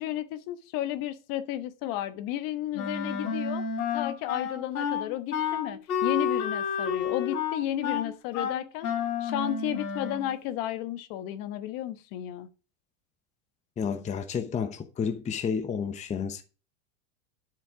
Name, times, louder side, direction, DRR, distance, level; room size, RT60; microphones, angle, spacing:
voice 1, 0.0-3.6 3.9-8.9 9.2-12.5, left 12 dB, 50° left, 1.2 m, -33 dB
Wind instrument woodwind instrument, 2.7-10.3, left 7 dB, 90° left, 3.3 m, -30 dB
voice 2, 13.8-16.4, left 6 dB, 15° left, 0.9 m, -31 dB
9.7 x 7.5 x 4.7 m
supercardioid pair, 125°, 42 cm